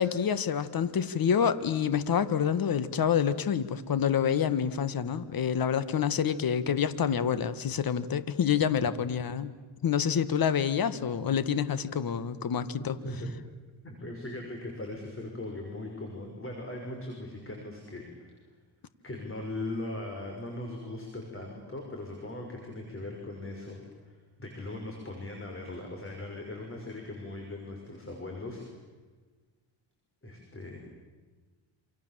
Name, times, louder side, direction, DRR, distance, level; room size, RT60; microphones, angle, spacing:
voice 1, 0.0-9.5 9.8-12.9, left 8 dB, 45° left, 14 dB, 1.7 m, -27 dB
voice 2, 13.8-18.4 19.0-23.8 24.1-28.6 30.2-30.8, left 2 dB, 25° left, 2 dB, 6.1 m, -39 dB
28.5 x 27.5 x 7.6 m, 1.4 s
cardioid pair, 95°, 47 cm